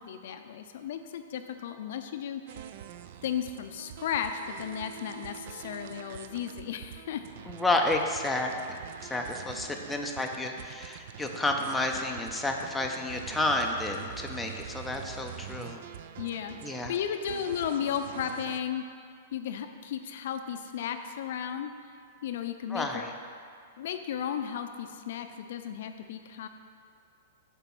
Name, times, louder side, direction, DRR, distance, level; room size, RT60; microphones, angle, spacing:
voice 1, 0.0-2.7 3.2-7.2 16.2-18.8 19.3-21.7 22.2-23.1 23.8-26.5, left 8 dB, 60° left, 7 dB, 0.5 m, -34 dB
sound 1, 2.5-18.6, right 9 dB, 55° right, 0.3 m, -45 dB
voice 2, 7.5-8.5 9.0-15.8 16.6-16.9 22.7-23.1, left 2 dB, 5° left, 1 dB, 0.5 m, -30 dB
6.8 x 4.6 x 6.1 m, 2.2 s
hypercardioid pair, 150°, 0 cm